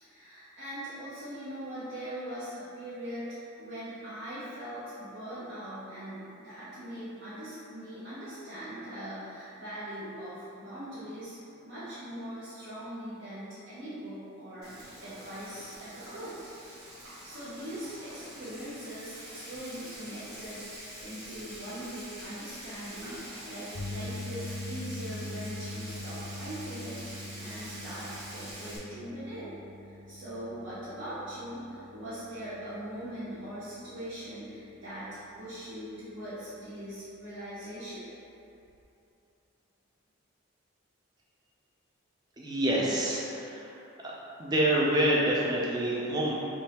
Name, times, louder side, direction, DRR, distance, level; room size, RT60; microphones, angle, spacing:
voice 1, 0.0-11.4 11.6-16.3 17.2-29.5 29.8-38.1, equal, 60° right, -13 dB, 0.7 m, -41 dB
Frying (food), 14.6-28.8, right 1 dB, 90° right, 1.2 m, -45 dB
sound 1, 23.8-36.0 36.3-36.6 38.8-38.9, left 2 dB, 60° left, 0.4 m, -43 dB
voice 2, 42.4-44.1 44.4-46.3, right 1 dB, 20° right, -5 dB, 0.4 m, -27 dB
3.5 x 3.0 x 2.8 m, 2.8 s
head